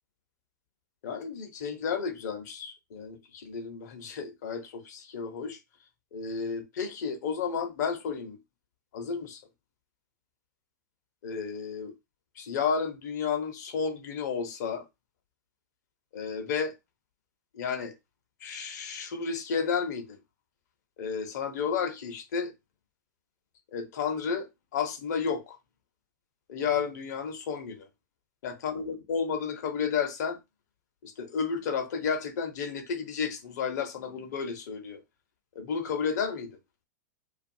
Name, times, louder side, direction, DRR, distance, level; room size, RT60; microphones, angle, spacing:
voice 1, 1.0-5.6 6.1-8.4 8.9-9.4 11.2-11.9 12.4-14.8 16.1-16.7 17.5-17.9 18.4-20.2 21.0-22.5 23.7-25.6 26.5-27.9 28.4-30.4 31.0-35.0 35.5-36.6, left 6 dB, 60° left, 0.9 m, -32 dB
2.5 x 2.4 x 2.6 m
figure-of-eight pair, 100°, 10 cm